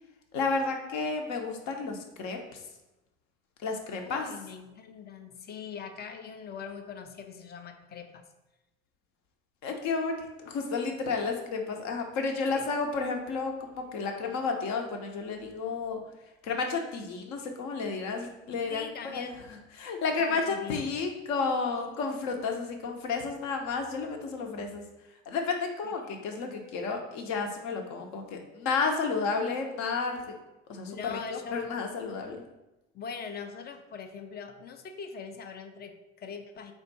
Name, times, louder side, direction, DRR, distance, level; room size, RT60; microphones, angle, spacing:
voice 1, 0.3-2.6 3.6-4.3 9.6-16.0 16.4-24.8 25.3-30.2 30.7-32.4, left 4 dB, 55° left, 3 dB, 0.8 m, -32 dB
voice 2, 4.0-8.3 12.5-12.7 18.7-19.4 20.3-21.0 25.8-26.6 30.9-31.7 32.9-36.7, left 6 dB, 30° left, 7 dB, 0.5 m, -42 dB
3.5 x 2.5 x 4.0 m, 0.99 s
hypercardioid pair, 75°, 33 cm